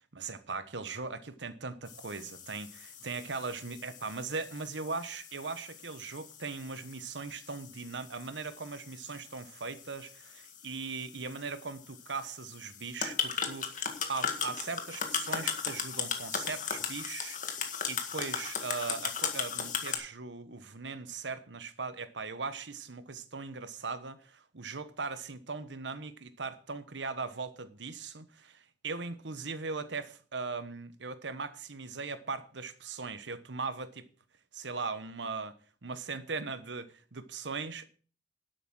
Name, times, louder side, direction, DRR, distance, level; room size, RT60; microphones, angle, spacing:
voice 1, 0.1-34.1 34.5-37.9, right 4 dB, 80° right, 1.1 m, -39 dB
sound 1, 1.9-20.0, left 6 dB, 45° left, 1.9 m, -38 dB
11.0 x 8.4 x 6.1 m
head